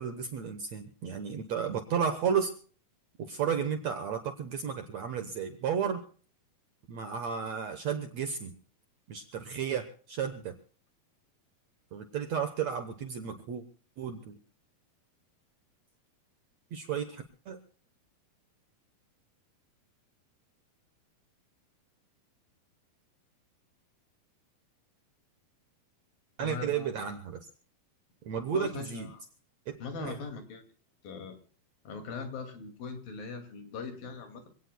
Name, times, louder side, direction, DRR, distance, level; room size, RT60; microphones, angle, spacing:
voice 1, 0.0-2.5 3.2-6.0 6.9-8.5 9.1-10.5 11.9-13.6 14.0-14.4 16.7-17.6 26.4-27.5 28.2-29.1 29.7-30.1, right 7 dB, 65° right, 7 dB, 1.8 m, -33 dB
voice 2, 26.4-26.9 28.5-29.2 29.8-30.6 31.0-31.4 31.8-34.5, left 4 dB, 70° left, 6 dB, 4.1 m, -40 dB
26.0 x 17.5 x 2.2 m, 0.42 s
omnidirectional pair, 4.3 m